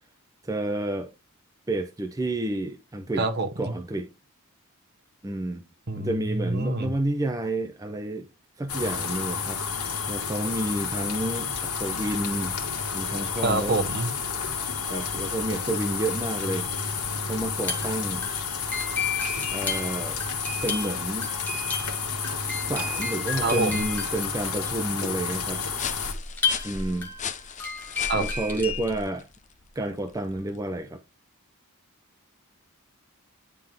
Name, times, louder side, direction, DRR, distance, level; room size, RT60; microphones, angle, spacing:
voice 1, 0.4-1.1 1.7-3.3 3.6-4.1 5.2-5.6 5.9-8.3 8.6-9.6 10.1-12.5 12.9-13.8 14.9-16.7 17.2-18.3 19.5-20.2 20.6-21.3 22.6-25.6 26.6-27.1 28.2-29.3 29.8-31.0, right 1 dB, 15° right, 0.5 m, -30 dB
voice 2, 3.2-3.5 5.9-6.9 13.4-14.1 23.4-23.8 28.1-28.2, right 3 dB, 45° right, 1.1 m, -26 dB
sound 1, 8.7-26.1, left 5 dB, 80° left, 1.8 m, -31 dB
sound 2, 17.6-29.0, left 4 dB, 10° left, 1.9 m, -33 dB
sound 3, 25.7-30.8, left 7 dB, 35° left, 0.7 m, -40 dB
9.8 x 3.7 x 3.4 m
head